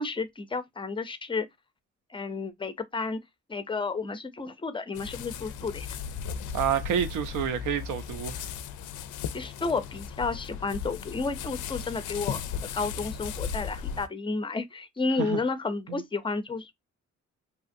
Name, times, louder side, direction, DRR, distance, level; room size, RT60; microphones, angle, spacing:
voice 1, 0.0-1.5 2.1-3.2 3.5-5.9 9.3-16.7, left 4 dB, 15° left, 0.5 m, -32 dB
sound 1, 4.9-14.1, left 7 dB, 80° left, 0.4 m, -36 dB
voice 2, 6.5-8.5 15.2-15.4 15.9-16.0, right 8 dB, 80° right, 0.6 m, -29 dB
2.8 x 2.4 x 2.6 m
cardioid pair, 90°, 30 cm